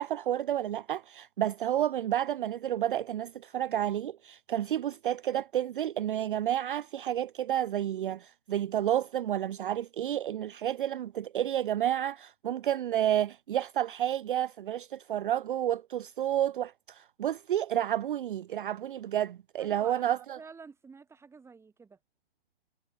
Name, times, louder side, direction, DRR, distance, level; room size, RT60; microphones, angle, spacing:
voice 1, 0.0-20.4, right 11 dB, 55° right, 0.5 m, -30 dB
voice 2, 19.6-22.0, right 5 dB, 10° right, 4.5 m, -50 dB
figure-of-eight pair, 125°, 32 cm